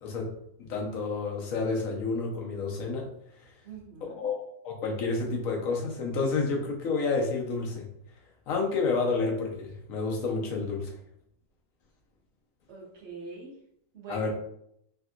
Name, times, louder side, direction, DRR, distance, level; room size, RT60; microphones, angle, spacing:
voice 1, 0.7-3.1 4.2-7.9 8.5-10.9 14.1-14.3, left 4 dB, 80° left, 0 dB, 1.1 m, -29 dB
voice 2, 3.6-4.3 12.7-13.6 13.9-14.3, right 4 dB, 60° right, -3 dB, 1.0 m, -44 dB
3.3 x 2.7 x 2.4 m, 0.74 s
omnidirectional pair, 1.4 m